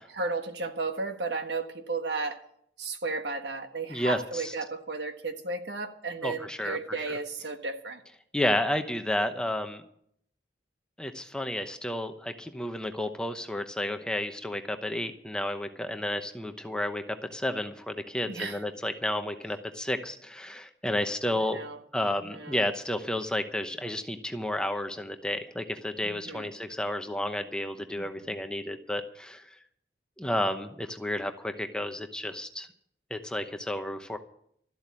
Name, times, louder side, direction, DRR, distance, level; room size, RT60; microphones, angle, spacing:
voice 1, 0.2-2.4 2.8-8.0 18.2-18.6 21.4-21.8 22.2-22.6 26.0-26.5 28.0-28.4, right 3 dB, 70° right, 6 dB, 1.5 m, -34 dB
voice 2, 3.9-4.5 6.2-7.2 8.3-9.8 11.0-21.6 21.9-29.5 30.2-32.7 33.1-34.2, left 1 dB, 5° left, 7 dB, 0.9 m, -31 dB
13.0 x 8.0 x 9.7 m, 0.68 s
head